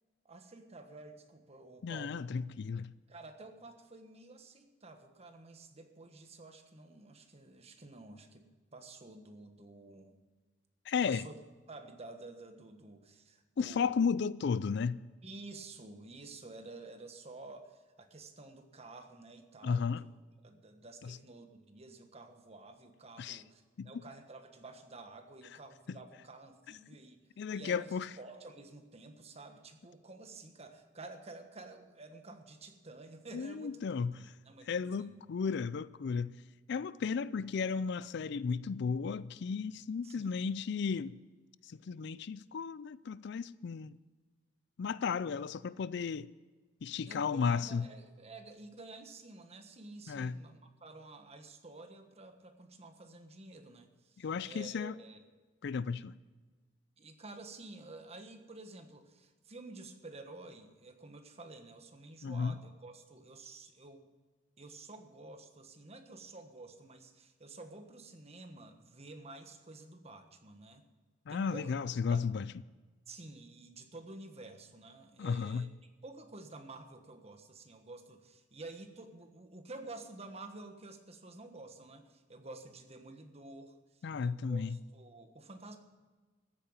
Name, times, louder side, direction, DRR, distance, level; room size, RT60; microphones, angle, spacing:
voice 1, 0.2-2.3 3.1-8.5 8.7-10.2 11.0-11.3 11.7-13.9 15.2-20.1 20.4-35.1 40.0-40.6 47.0-55.2 57.0-64.1 64.6-70.8 71.3-72.3 73.1-85.8, right 2 dB, 35° right, 1.3 m, -51 dB
voice 2, 1.8-2.9 10.9-11.2 13.6-15.0 19.6-20.0 21.0-21.2 23.2-23.4 23.8-23.9 25.9-26.0 27.4-28.1 33.3-34.3 34.7-36.4 36.7-41.2 41.7-44.0 44.8-46.3 46.8-47.8 50.1-50.4 54.2-55.0 55.6-56.1 62.2-62.6 71.3-72.5 75.2-75.7 84.0-84.8, left 5 dB, 65° left, 0.4 m, -34 dB
14.5 x 8.7 x 7.2 m
head